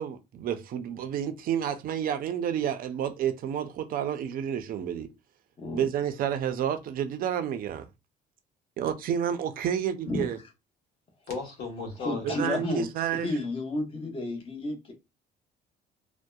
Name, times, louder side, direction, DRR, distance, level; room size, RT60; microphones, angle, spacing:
voice 1, 0.0-5.1 5.7-7.9 8.8-10.4 12.2-13.4, right 9 dB, 60° right, 0.5 m, -30 dB
voice 2, 11.3-12.7, left 4 dB, 65° left, 1.3 m, -36 dB
voice 3, 12.0-12.9 13.2-14.9, left 2 dB, 35° left, 0.8 m, -31 dB
2.6 x 2.1 x 2.3 m
cardioid pair, 110°, 17 cm